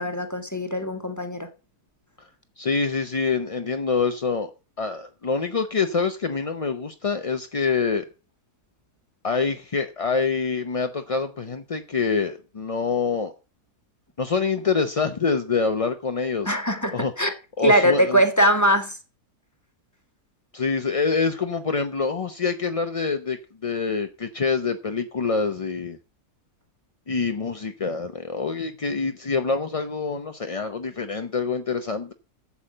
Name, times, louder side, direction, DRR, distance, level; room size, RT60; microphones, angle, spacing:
voice 1, 0.0-1.5 16.4-17.3 17.6-19.0, right 1 dB, 10° left, 1.1 m, -21 dB
voice 2, 2.6-4.5 4.8-8.1 9.2-13.3 14.2-16.5 16.9-17.1 17.6-18.2 20.5-26.0 27.1-32.1, left 5 dB, 45° left, 0.4 m, -26 dB
8.4 x 7.2 x 7.6 m
omnidirectional pair, 1.7 m